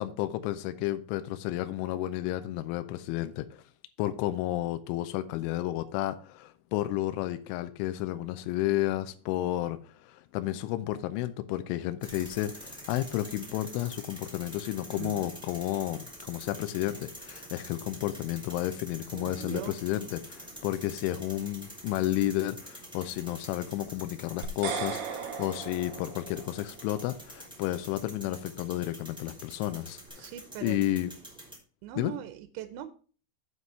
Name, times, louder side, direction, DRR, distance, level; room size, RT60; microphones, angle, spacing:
voice 1, 0.0-3.6 4.0-30.3 30.6-31.1 32.0-32.1, left 14 dB, 85° left, 2.9 m, -32 dB
sound 1, 12.0-31.6, equal, ahead, 1.5 m, -47 dB
voice 2, 15.0-15.3 19.1-19.8 30.2-30.8 31.8-32.9, right 11 dB, 80° right, 2.9 m, -40 dB
sound 2, 24.4-26.7, right 6 dB, 65° right, 3.4 m, -36 dB
7.8 x 5.7 x 5.5 m
omnidirectional pair, 5.8 m